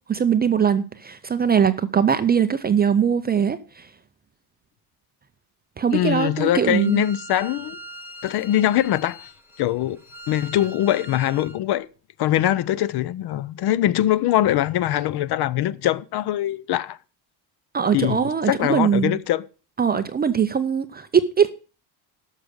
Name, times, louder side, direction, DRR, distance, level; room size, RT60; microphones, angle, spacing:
voice 1, 0.1-3.9 5.8-7.0 17.7-19.2 19.8-21.5, right 7 dB, 20° right, 0.4 m, -21 dB
voice 2, 5.9-7.8 8.2-9.3 9.6-10.0 10.3-11.9 12.2-17.0 17.9-18.2 18.5-19.4, left 13 dB, 50° left, 0.6 m, -22 dB
Bowed string instrument, 6.2-11.6, right 1 dB, 5° right, 1.1 m, -42 dB
12.0 x 6.5 x 6.4 m
cardioid pair, 150°, 50 cm